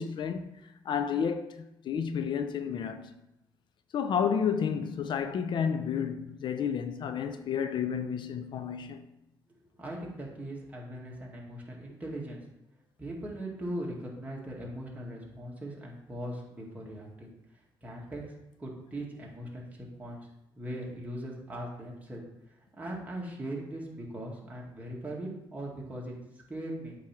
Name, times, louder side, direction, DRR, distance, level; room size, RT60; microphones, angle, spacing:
voice 1, 0.0-3.1 3.9-9.1, left 7 dB, 60° left, 0.5 m, -31 dB
voice 2, 9.8-12.4 13.0-17.3 17.8-18.2 18.6-20.2 20.6-22.2 22.7-26.1 26.5-27.0, right 1 dB, 20° right, 2.2 m, -39 dB
8.3 x 3.2 x 5.9 m
cardioid pair, 85°, 9 cm